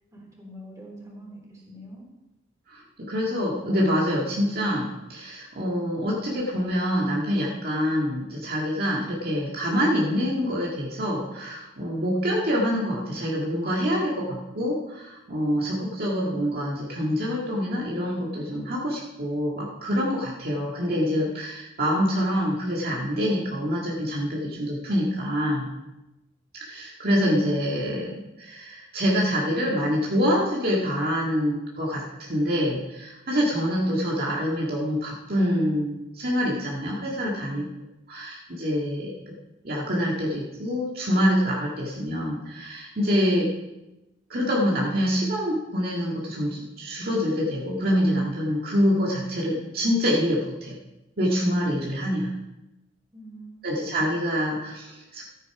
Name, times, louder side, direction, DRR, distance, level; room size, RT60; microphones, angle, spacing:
voice 1, 0.4-2.1 37.2-37.8 53.1-54.2, equal, 15° right, -3 dB, 3.9 m, -44 dB
voice 2, 2.7-25.7 26.5-32.0 32.3-37.6 38.1-39.3 39.6-43.5 44.3-50.8 51.2-52.3 53.6-55.2, equal, 50° right, -4 dB, 1.9 m, -26 dB
14.0 x 9.3 x 4.8 m, 0.99 s
head